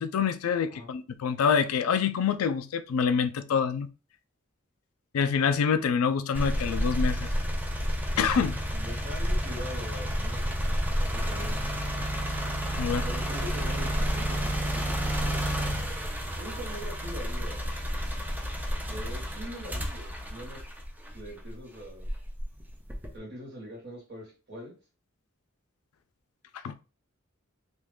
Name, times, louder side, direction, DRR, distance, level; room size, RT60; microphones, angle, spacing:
voice 1, 0.0-3.9 5.1-7.3 8.2-8.6 12.8-13.0 26.6-26.7, left 6 dB, 85° left, 0.4 m, -26 dB
sound 1, 6.3-21.4 22.0-23.2, equal, 10° right, 0.4 m, -30 dB
voice 2, 8.7-11.6 13.0-15.4 16.3-17.6 18.9-20.6 21.1-22.1 23.1-24.7, equal, 55° right, 1.6 m, -43 dB
2.8 x 2.3 x 3.5 m
head